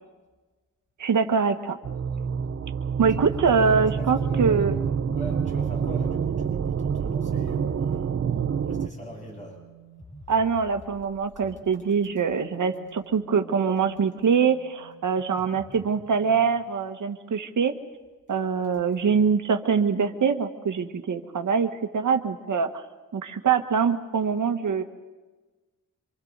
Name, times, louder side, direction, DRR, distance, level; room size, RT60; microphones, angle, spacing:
voice 1, 1.0-1.8 3.0-4.7 10.3-17.7 18.3-22.7 23.1-24.8, right 6 dB, 65° right, 6 dB, 1.6 m, -24 dB
sound 1, 1.8-8.9, right 7 dB, 45° right, 0.8 m, -27 dB
voice 2, 3.3-4.8 5.0-9.6, left 1 dB, 20° left, -1 dB, 7.3 m, -41 dB
sound 2, 3.8-16.7, right 3 dB, 80° left, 4.7 m, -49 dB
27.0 x 26.0 x 4.1 m, 1.3 s
wide cardioid pair, 115°, 33 cm